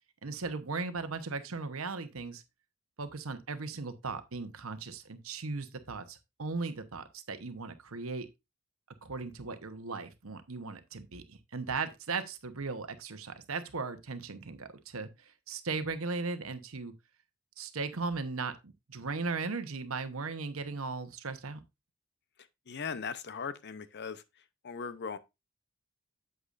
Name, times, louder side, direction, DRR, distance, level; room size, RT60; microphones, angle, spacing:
voice 1, 0.2-2.4 3.0-8.3 9.0-16.9 17.6-21.6, right 4 dB, 85° right, 1.0 m, -37 dB
voice 2, 22.7-25.2, left 5 dB, 55° left, 0.7 m, -39 dB
8.3 x 7.9 x 2.5 m
head